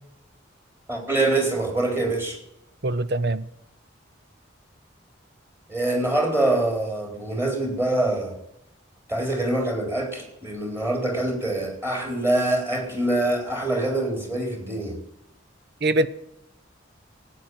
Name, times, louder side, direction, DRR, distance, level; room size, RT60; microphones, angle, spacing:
voice 1, 0.9-2.4 5.7-8.4 9.1-15.0, right 2 dB, 10° right, 3.9 m, -25 dB
voice 2, 2.8-3.5 15.8-16.1, right 2 dB, 55° right, 0.7 m, -22 dB
14.5 x 9.1 x 9.5 m
head